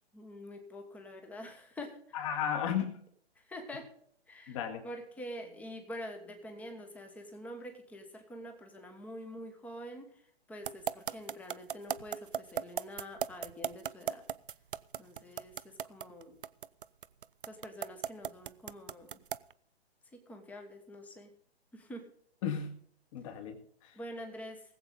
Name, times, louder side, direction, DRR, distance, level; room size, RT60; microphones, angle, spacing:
voice 1, 0.1-2.0 3.5-3.9 4.3-4.6 4.8-10.1 10.5-14.2 15.0-16.4 17.5-19.2 20.1-21.3 21.7-22.1 23.9-24.6, equal, 5° left, 5 dB, 1.3 m, -46 dB
voice 2, 2.1-2.9 4.5-4.8 22.4-22.8 23.1-24.0, left 8 dB, 30° left, 6 dB, 2.0 m, -34 dB
sound 1, 10.6-19.5, right 8 dB, 50° right, 0.5 m, -36 dB
20.0 x 8.0 x 3.9 m, 0.63 s
figure-of-eight pair, 135°, 33 cm